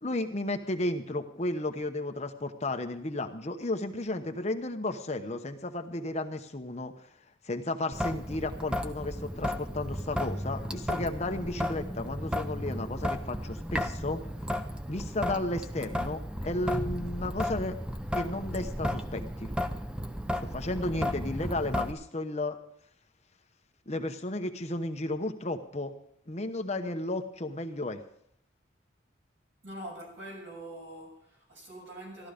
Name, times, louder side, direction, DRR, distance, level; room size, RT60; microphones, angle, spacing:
voice 1, 0.0-6.9 7.4-14.2 14.9-17.8 18.1-19.5 20.4-22.6 23.9-25.9 26.3-28.0, left 2 dB, 35° left, 6 dB, 1.0 m, -33 dB
Traffic noise roadway noise / Drip / Trickle dribble, 7.9-21.9, equal, 5° right, 0.7 m, -34 dB
voice 2, 29.6-32.3, right 1 dB, 75° right, -1 dB, 6.7 m, -44 dB
15.0 x 12.5 x 5.2 m, 0.68 s
head